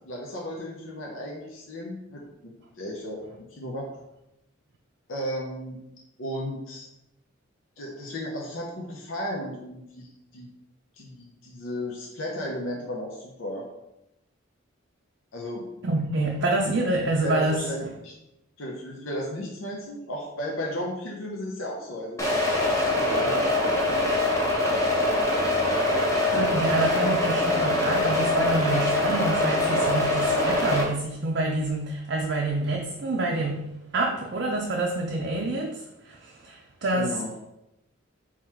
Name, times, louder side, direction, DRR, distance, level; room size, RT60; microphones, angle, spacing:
voice 1, 0.0-3.2 3.5-3.9 5.1-5.8 6.2-6.9 7.8-10.5 11.0-13.7 15.3-15.7 17.2-18.1 18.6-22.3 22.6-24.3 36.9-37.3, equal, 75° left, -2 dB, 0.8 m, -34 dB
voice 2, 15.8-17.6 26.3-37.1, right 2 dB, 55° right, 0 dB, 0.5 m, -27 dB
sound 1, 22.2-30.8, left 1 dB, 15° left, 0.8 m, -23 dB
3.9 x 3.0 x 4.4 m, 0.88 s
head